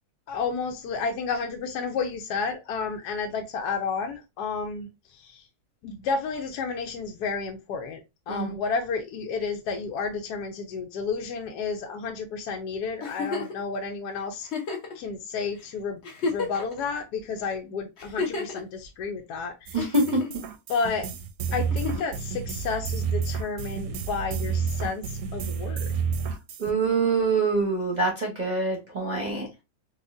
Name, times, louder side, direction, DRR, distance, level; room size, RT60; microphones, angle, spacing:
voice 1, 0.3-5.4 5.8-14.5 14.9-19.9 20.7-21.1 21.5-25.9, left 5 dB, 80° left, 1.1 m, -31 dB
Giggle, 13.0-13.6 14.4-14.9 15.6-15.7 16.0-16.8 18.0-18.6 19.8-20.4 21.7-22.2 23.7-23.8, left 4 dB, 50° left, 1.1 m, -31 dB
sound 1, 19.7-26.7, right 6 dB, 70° right, 1.0 m, -30 dB
voice 2, 26.6-29.5, right 3 dB, 35° right, 0.8 m, -25 dB
4.3 x 2.3 x 2.5 m
omnidirectional pair, 1.7 m